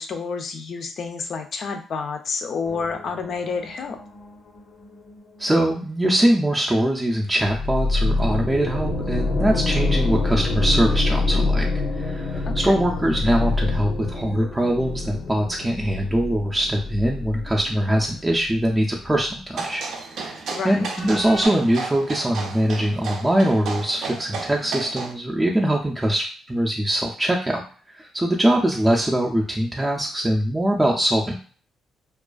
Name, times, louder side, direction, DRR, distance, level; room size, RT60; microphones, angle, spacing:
voice 1, 0.0-4.0 12.4-12.8 20.5-20.9, left 5 dB, 55° left, 5 dB, 0.5 m, -29 dB
sound 1, 2.6-5.4 7.4-18.8 19.1-19.2 20.9-21.5, left 3 dB, 85° left, 0.7 m, -26 dB
voice 2, 5.4-11.7 12.0-19.8 20.1-27.6 27.9-31.4, right 1 dB, 10° right, -1 dB, 0.4 m, -22 dB
sound 2, 19.5-25.1, right 4 dB, 75° right, 0.4 m, -33 dB
2.4 x 2.3 x 2.3 m, 0.42 s
cardioid pair, 90°, 0 cm